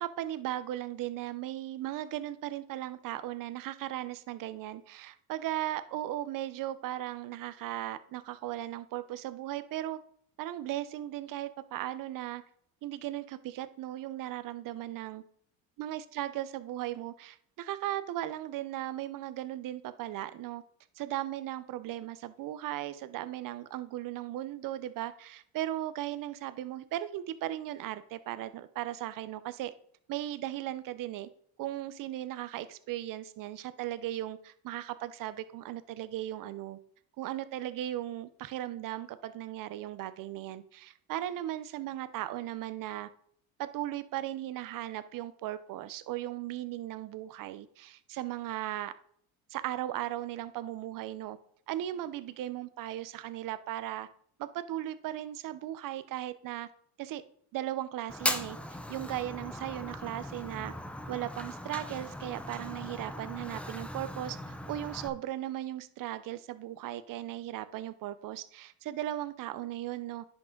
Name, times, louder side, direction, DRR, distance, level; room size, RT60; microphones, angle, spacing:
voice 1, 0.0-10.0 10.4-12.4 12.8-15.2 15.8-20.6 21.0-29.7 30.1-31.3 31.6-36.8 37.2-43.1 43.6-48.9 49.5-51.4 51.7-54.1 54.4-56.7 57.0-57.2 57.5-58.6 58.9-60.7 61.1-70.3, right 13 dB, 50° right, 13 dB, 0.8 m, -37 dB
Fire, 58.1-65.1, left 1 dB, 5° left, 0.8 m, -38 dB
10.5 x 6.1 x 3.9 m, 0.63 s
supercardioid pair, 100°, 41 cm